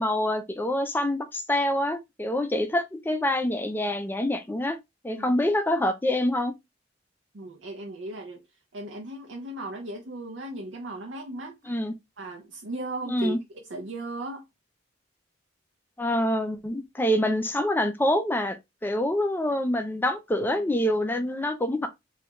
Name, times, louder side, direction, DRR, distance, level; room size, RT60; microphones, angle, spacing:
voice 1, 0.0-4.8 5.0-6.5 11.7-11.9 13.1-13.4 16.0-18.6 18.8-21.9, left 1 dB, 10° left, 0.4 m, -26 dB
voice 2, 7.3-8.5 8.7-11.7 12.2-14.5, right 2 dB, 70° right, 0.5 m, -37 dB
3.2 x 2.3 x 2.8 m
head